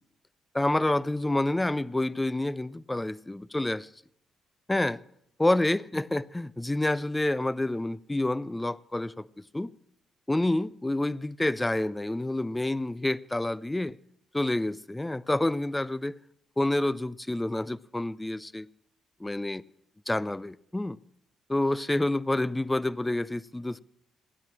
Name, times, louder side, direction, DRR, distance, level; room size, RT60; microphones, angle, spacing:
voice 1, 0.5-3.9 4.7-5.0 5.4-9.3 9.5-9.7 10.3-14.0 14.3-16.2 16.6-18.7 19.2-19.6 20.1-21.0 21.5-23.8, left 1 dB, 15° left, 0.5 m, -28 dB
16.0 x 10.5 x 7.4 m
figure-of-eight pair, 40°, 0 cm